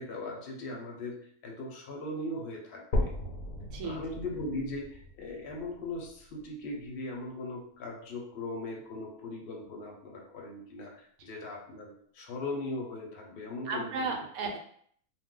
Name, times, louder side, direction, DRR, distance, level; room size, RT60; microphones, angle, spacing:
voice 1, 0.0-3.1 3.8-14.1, left 2 dB, 50° left, -1 dB, 0.8 m, -39 dB
sound 1, 2.9-6.9 7.5-7.6 8.1-8.2 8.6-8.7 9.5-9.6, left 1 dB, 75° left, 1.0 m, -36 dB
voice 2, 3.6-4.0 13.7-14.6, right 4 dB, 85° right, 2 dB, 1.1 m, -34 dB
2.4 x 2.2 x 3.7 m, 0.62 s
omnidirectional pair, 1.5 m